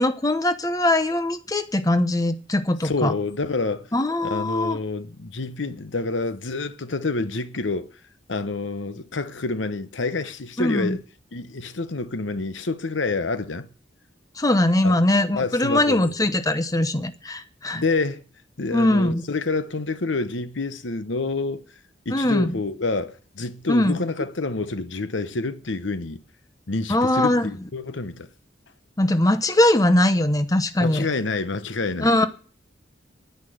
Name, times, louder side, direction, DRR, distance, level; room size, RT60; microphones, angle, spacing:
voice 1, 0.0-3.1 3.9-4.8 10.6-11.0 14.4-17.8 18.7-19.2 22.1-22.5 23.7-24.0 26.9-27.5 29.0-31.1 32.0-32.3, left 1 dB, 20° left, 0.9 m, -21 dB
voice 2, 2.8-3.9 4.2-7.9 8.3-11.0 11.3-13.7 14.8-16.1 17.7-18.2 18.6-21.6 22.0-26.2 26.7-28.3 30.8-32.1, left 3 dB, 80° left, 1.0 m, -28 dB
11.0 x 9.8 x 7.9 m
head